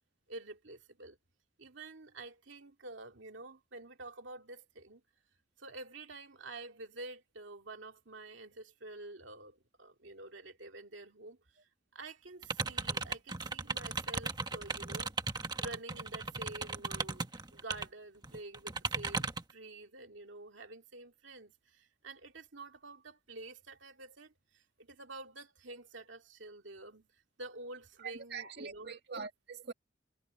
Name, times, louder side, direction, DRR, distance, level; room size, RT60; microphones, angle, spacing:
voice 1, 0.3-1.2 1.6-5.0 5.6-11.6 11.9-15.1 15.6-29.0, right 2 dB, 85° right, 2.3 m, -49 dB
sound 1, 12.4-17.9 18.2-19.5, right 3 dB, 25° right, 1.4 m, -36 dB
voice 2, 28.0-29.7, right 5 dB, 60° right, 2.3 m, -43 dB
head